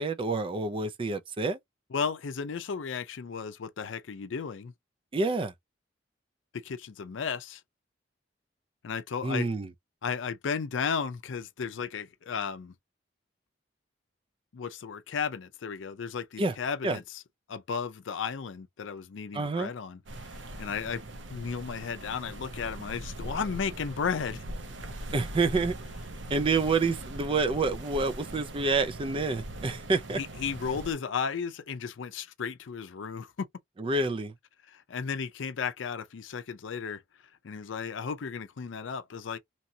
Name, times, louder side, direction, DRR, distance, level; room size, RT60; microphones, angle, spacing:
voice 1, 0.0-1.6 5.1-5.5 9.2-9.7 16.4-16.5 16.8-17.0 19.3-19.7 25.1-25.7 26.3-30.2 33.8-34.3, right 3 dB, 30° right, 0.4 m, -28 dB
voice 2, 1.9-4.7 6.5-7.6 8.8-9.5 10.0-12.7 14.5-17.0 17.5-20.0 20.6-21.0 21.3-24.4 30.1-33.5 34.7-37.0 37.4-39.4, left 6 dB, 85° left, 0.5 m, -34 dB
sound 1, 20.1-30.9, right 1 dB, 70° right, 0.7 m, -41 dB
2.9 x 2.7 x 2.7 m
head